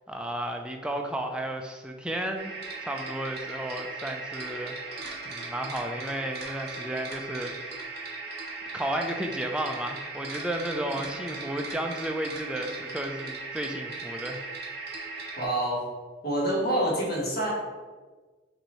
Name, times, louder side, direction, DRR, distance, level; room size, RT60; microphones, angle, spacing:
voice 1, 0.1-2.5 2.8-7.8 8.7-14.4, right 1 dB, 5° right, 3 dB, 0.3 m, -33 dB
sound 1, 2.4-15.5, right 3 dB, 60° right, 0.9 m, -38 dB
voice 2, 15.4-15.8 16.2-17.5, right 1 dB, 55° left, -4 dB, 1.3 m, -26 dB
6.1 x 2.7 x 3.0 m, 1.4 s
head